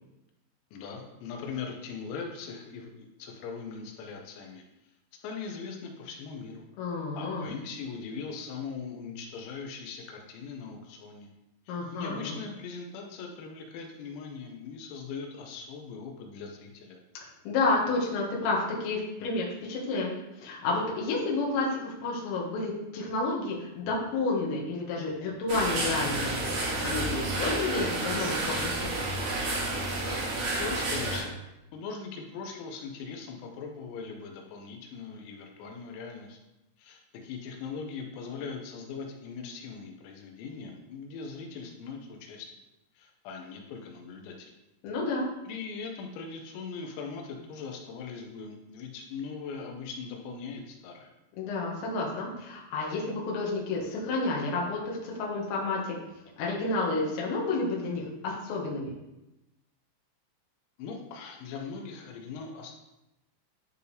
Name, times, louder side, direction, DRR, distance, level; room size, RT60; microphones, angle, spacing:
voice 1, 0.7-4.9 5.2-6.7 7.2-11.3 11.7-17.0 30.6-31.4 31.7-36.4 36.8-42.5 43.0-44.5 45.5-51.1 54.4-54.5 60.8-62.7, left 5 dB, 90° left, 1 dB, 3.7 m, -40 dB
voice 2, 6.8-7.5 11.7-12.3 17.5-20.1 20.4-26.3 26.8-28.9 44.8-45.3 51.4-56.0 56.4-58.9, left 3 dB, 65° left, -3 dB, 3.5 m, -30 dB
sound 1, 25.5-31.2, right 2 dB, 55° right, 2.6 m, -30 dB
11.5 x 4.7 x 3.4 m, 0.94 s
omnidirectional pair, 6.0 m